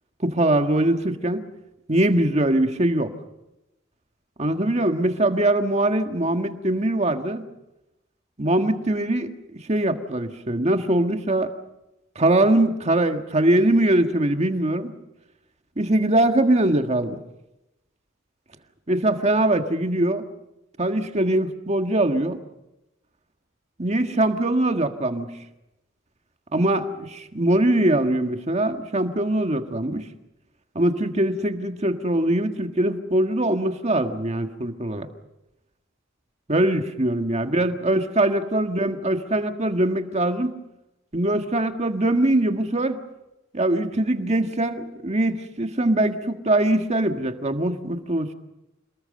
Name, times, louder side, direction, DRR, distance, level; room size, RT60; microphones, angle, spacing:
voice 1, 0.2-1.4 1.9-3.1 4.4-7.4 8.4-9.3 9.7-11.5 12.1-14.9 15.8-17.2 18.9-20.2 20.8-22.4 23.8-25.3 26.5-30.0 30.7-35.1 36.5-40.5 41.1-43.0 43.5-48.3, right 1 dB, 30° right, 6 dB, 1.6 m, -22 dB
28.0 x 19.5 x 6.7 m, 0.95 s
head